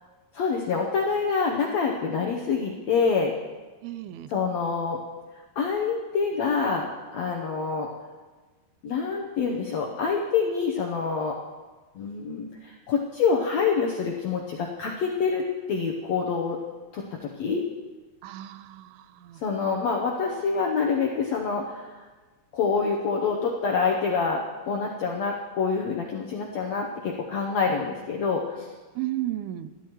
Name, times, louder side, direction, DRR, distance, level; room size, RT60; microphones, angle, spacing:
voice 1, 0.3-3.3 4.3-5.0 5.6-6.9 7.1-7.9 8.8-11.4 11.9-16.6 16.9-17.7 19.4-22.0 22.5-28.7, left 5 dB, 75° left, 0 dB, 1.6 m, -26 dB
voice 2, 3.8-4.3 18.2-19.4 29.0-29.7, right 14 dB, 85° right, 13 dB, 2.5 m, -34 dB
21.0 x 13.5 x 3.0 m, 1.3 s
omnidirectional pair, 4.3 m